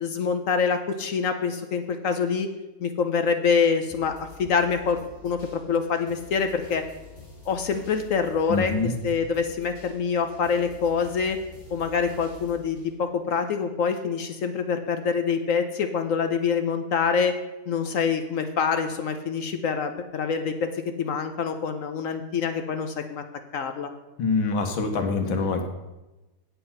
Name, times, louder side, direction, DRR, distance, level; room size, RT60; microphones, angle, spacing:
voice 1, 0.0-2.5 2.8-4.1 4.4-6.8 7.5-8.7 9.0-11.4 11.7-17.3 17.7-20.5 21.0-23.2 23.5-23.9, left 6 dB, 60° left, 7 dB, 0.8 m, -25 dB
sound 1, 3.9-13.9 14.4-14.5, left 3 dB, 35° left, 4.1 m, -47 dB
voice 2, 8.5-8.9 24.2-25.7, left 4 dB, 90° left, 5 dB, 2.0 m, -25 dB
9.3 x 7.9 x 5.7 m, 1.1 s
omnidirectional pair, 2.1 m